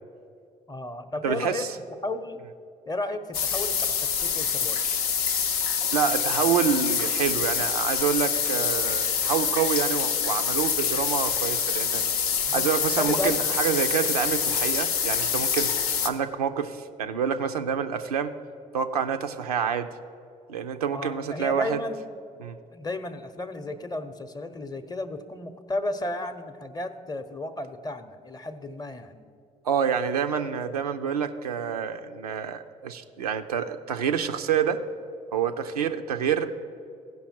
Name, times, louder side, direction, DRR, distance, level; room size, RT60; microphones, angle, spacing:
voice 1, 0.7-1.7 2.0-2.5 2.9-5.0 12.5-13.4 20.9-22.0 22.7-29.2, left 2 dB, 20° left, 10 dB, 0.7 m, -33 dB
voice 2, 1.2-1.7 5.9-12.0 12.5-15.7 16.0-18.4 18.7-19.9 20.5-21.8 22.4-22.6 29.7-34.8 35.3-36.6, right 7 dB, 80° right, 7 dB, 0.4 m, -27 dB
sound 1, 3.3-16.1, left 7 dB, 75° left, 0.6 m, -26 dB
15.5 x 5.6 x 4.3 m, 2.5 s
figure-of-eight pair, 50°, 19 cm